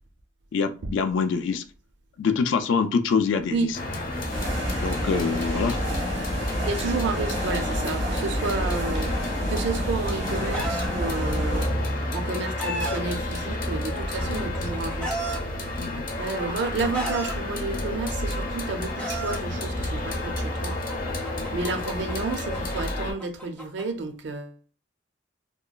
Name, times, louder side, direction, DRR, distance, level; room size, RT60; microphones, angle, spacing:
voice 1, 0.5-1.6 2.2-3.8 4.8-5.8 15.8-16.1, left 5 dB, 75° left, 0.3 m, -25 dB
sound 1, 3.7-23.1, left 1 dB, 50° left, 0.7 m, -30 dB
sound 2, 4.3-11.7, equal, 85° right, 1.0 m, -29 dB
voice 2, 6.6-11.8 12.1-15.1 15.9-20.8 21.5-24.5, right 3 dB, 65° right, 0.5 m, -31 dB
Chicken rooster, 9.9-10.9 11.9-13.0 14.0-15.4 16.3-17.3 18.3-19.4 20.5-23.8, right 1 dB, 5° left, 0.4 m, -34 dB
2.9 x 2.3 x 2.3 m
head